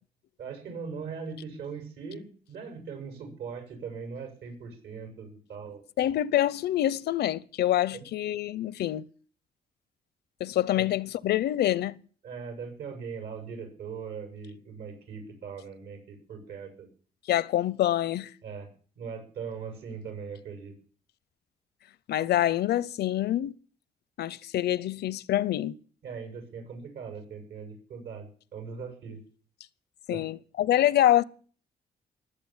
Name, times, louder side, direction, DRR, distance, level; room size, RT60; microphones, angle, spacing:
voice 1, 0.4-5.8 7.9-8.0 10.8-10.9 12.2-16.9 18.4-18.7 18.9-20.7 26.0-29.2 30.1-30.3, right 5 dB, 85° right, 6.9 m, -40 dB
voice 2, 6.0-9.0 10.4-12.0 17.3-18.3 22.1-23.5 24.2-25.8 30.1-31.2, left 12 dB, 80° left, 0.7 m, -26 dB
20.5 x 8.2 x 7.3 m
cardioid pair, 150°, 17 cm